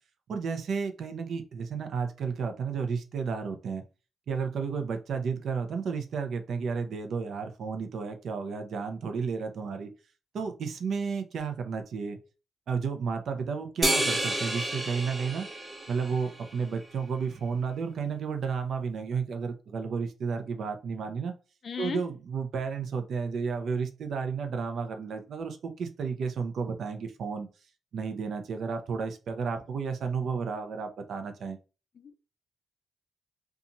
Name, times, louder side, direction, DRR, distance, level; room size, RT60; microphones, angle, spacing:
voice 1, 0.3-3.8 4.3-9.9 10.3-12.2 12.7-15.5 15.9-21.3 21.8-27.5 27.9-31.6, right 5 dB, 70° right, 0.5 m, -32 dB
sound 1, 13.8-16.5, right 1 dB, 20° right, 1.0 m, -30 dB
voice 2, 21.6-22.0 32.0-32.2, left 7 dB, 55° left, 0.4 m, -36 dB
2.6 x 2.3 x 2.8 m
cardioid pair, 75°, 0 cm